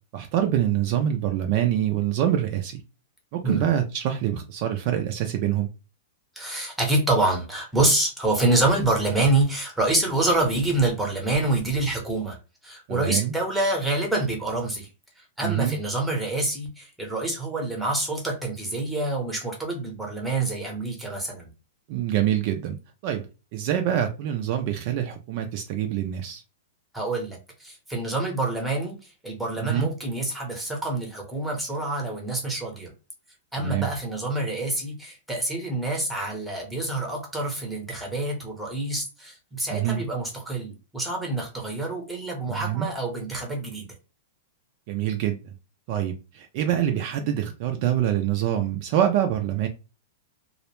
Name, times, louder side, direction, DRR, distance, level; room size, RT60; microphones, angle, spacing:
voice 1, 0.1-2.8 3.3-5.7 12.9-13.3 15.4-15.8 21.9-22.8 23.0-23.3 23.5-26.4 29.6-29.9 33.6-33.9 39.7-40.0 42.5-42.9 44.9-45.4 45.9-49.7, right 11 dB, 45° right, 0.4 m, -25 dB
voice 2, 6.4-12.4 12.6-14.9 15.2-21.5 26.9-32.9 33.5-43.9, right 2 dB, ahead, 0.8 m, -26 dB
2.3 x 2.1 x 2.9 m
hypercardioid pair, 150°, 0 cm